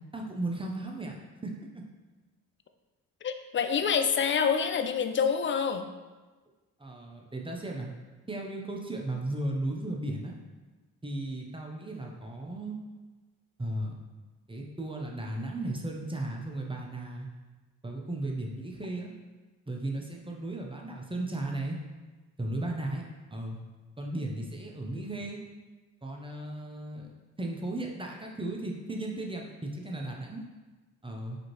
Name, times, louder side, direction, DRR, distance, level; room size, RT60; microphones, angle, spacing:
voice 1, 0.1-1.2 1.4-1.6 6.8-7.9 8.3-10.4 11.0-12.8 13.6-13.9 14.5-17.3 17.8-19.1 19.7-21.8 22.4-23.0 23.3-23.6 24.0-25.4 26.0-30.4 31.0-31.4, right 1 dB, 15° right, 0 dB, 0.8 m, -35 dB
voice 2, 3.2-5.8, left 6 dB, 30° left, 7 dB, 0.4 m, -27 dB
5.1 x 2.8 x 3.1 m, 1.2 s
supercardioid pair, 55°, 41 cm